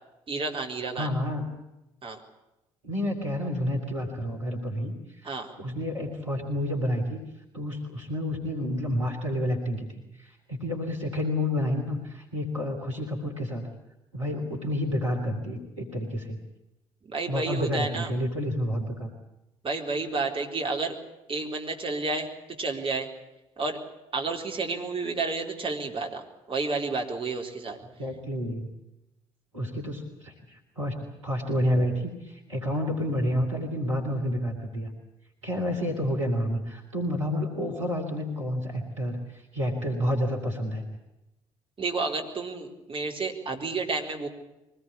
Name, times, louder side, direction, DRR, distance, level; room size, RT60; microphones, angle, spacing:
voice 1, 0.3-1.1 2.0-2.2 5.2-5.5 17.1-18.1 19.6-20.9 21.3-22.3 22.6-23.1 23.6-23.8 24.1-26.2 26.5-27.8 41.8-44.3, right 3 dB, 35° right, 2 dB, 4.2 m, -30 dB
voice 2, 0.9-1.5 2.8-7.2 7.5-13.7 14.1-16.4 17.3-19.1 28.0-28.7 29.5-34.9 35.4-40.8, equal, 85° right, -1 dB, 3.5 m, -29 dB
23.5 x 19.5 x 8.5 m, 0.93 s
figure-of-eight pair, 45°, 16 cm